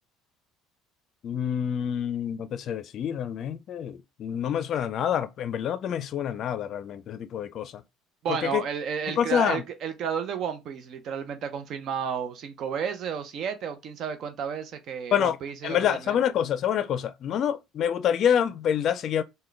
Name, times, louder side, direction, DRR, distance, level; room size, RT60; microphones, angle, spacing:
voice 1, 1.2-7.8 8.4-8.6 9.2-9.6 15.1-15.4 15.6-19.2, left 9 dB, 50° left, 0.4 m, -27 dB
voice 2, 8.2-16.2, right 7 dB, 55° right, 0.6 m, -32 dB
3.7 x 2.2 x 3.2 m
supercardioid pair, 100°, 0 cm